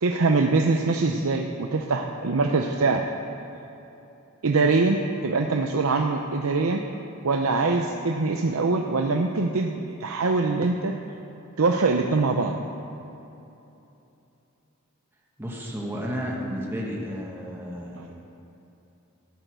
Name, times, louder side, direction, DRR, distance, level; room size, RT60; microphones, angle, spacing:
voice 1, 0.0-3.0 4.4-6.8 7.2-10.9 11.6-12.6 18.0-18.1, right 3 dB, 80° right, 3 dB, 0.7 m, -23 dB
voice 2, 15.4-18.2, equal, 10° right, -3 dB, 1.4 m, -32 dB
14.5 x 9.2 x 6.1 m, 2.9 s
head